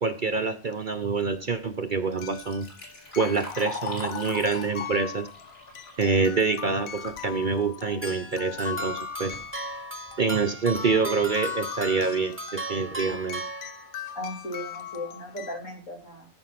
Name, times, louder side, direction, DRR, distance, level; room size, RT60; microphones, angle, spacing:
voice 1, 0.0-2.7 3.2-5.3 6.0-9.4 10.2-13.4, right 4 dB, 45° right, 8 dB, 0.9 m, -26 dB
sound 1, 0.7-0.8 2.2-15.6, left 9 dB, 85° left, 1.3 m, -40 dB
Liquid, 2.1-7.2 7.6-7.7 8.6-8.7 9.1-9.5 10.1-10.2 10.7-10.8 11.2-11.5, left 3 dB, 45° left, 4.1 m, -39 dB
sound 2, 8.0-14.2, right 2 dB, 10° right, 0.8 m, -37 dB
voice 2, 14.2-16.3, left 1 dB, 65° left, 1 dB, 3.5 m, -36 dB
14.5 x 6.1 x 5.9 m, 0.37 s
omnidirectional pair, 1.4 m